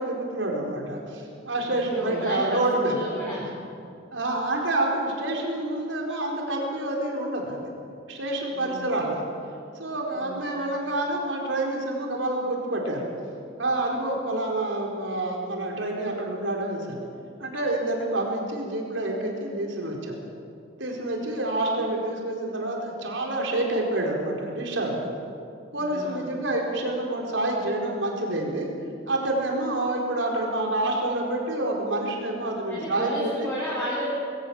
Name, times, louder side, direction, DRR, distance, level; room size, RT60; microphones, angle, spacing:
voice 1, 0.0-3.0 4.1-7.6 8.1-9.3 9.8-13.1 13.6-17.0 17.4-20.2 20.8-25.0 25.7-28.7 29.1-33.3, right 1 dB, 80° right, 0 dB, 4.4 m, -28 dB
voice 2, 1.6-2.6 2.9-3.4 8.5-8.9 10.1-10.4 25.7-26.3 32.7-34.1, equal, 10° left, -7 dB, 4.3 m, -33 dB
21.5 x 18.0 x 7.2 m, 2.4 s
head